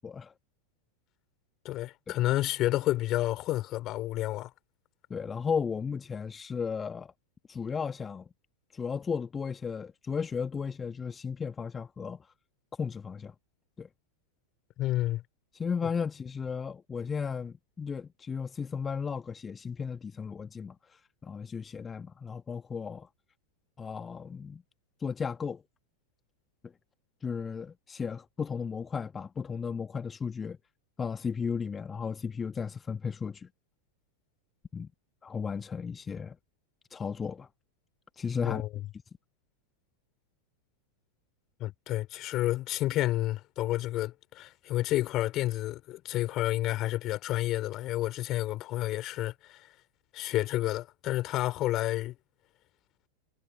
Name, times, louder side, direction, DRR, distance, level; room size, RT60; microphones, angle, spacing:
voice 1, 0.0-0.3 5.1-7.1 7.5-8.3 8.7-12.3 12.8-13.3 13.8-13.9 15.5-23.1 23.8-24.6 25.0-25.6 26.6-26.7 27.2-30.6 31.0-33.5 34.7-34.9 35.2-36.4 36.9-37.5 38.2-38.6, left 6 dB, 20° left, 1.4 m, -35 dB
voice 2, 1.6-4.5 14.8-15.2 38.4-38.7 41.6-49.7 50.1-52.1, left 15 dB, 35° left, 2.7 m, -30 dB
figure-of-eight pair, 90°, 0 cm